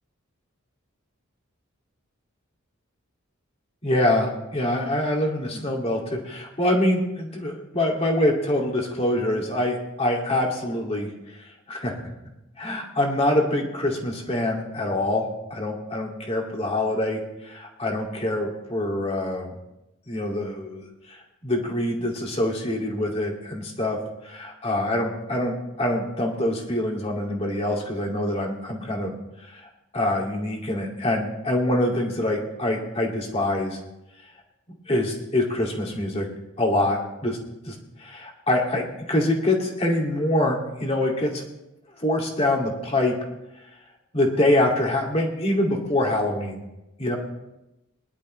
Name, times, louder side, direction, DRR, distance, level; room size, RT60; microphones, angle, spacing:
voice 1, 3.8-11.1 11.4-11.9 12.6-19.5 20.1-20.8 21.1-24.0 24.2-29.2 29.5-33.8 34.9-36.3 36.6-37.4 37.6-41.4 42.0-43.1 44.1-46.6 47.0-47.2, left 1 dB, 30° left, 0 dB, 2.4 m, -25 dB
22.5 x 11.5 x 3.2 m, 0.93 s
head